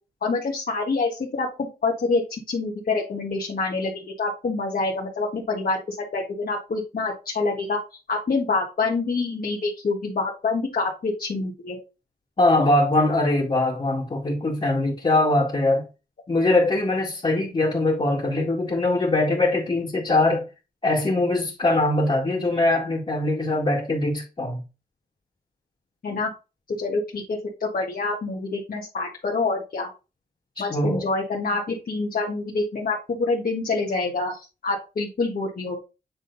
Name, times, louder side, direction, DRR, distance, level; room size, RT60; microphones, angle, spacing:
voice 1, 0.2-7.8 8.1-11.8 26.0-26.3 26.8-29.9 30.6-35.8, left 3 dB, 65° left, 1.7 m, -26 dB
voice 2, 12.4-15.9 16.3-20.5 20.8-24.6 30.6-31.0, left 2 dB, 35° left, 2.2 m, -22 dB
8.9 x 3.8 x 4.0 m
cardioid pair, 75°, 16 cm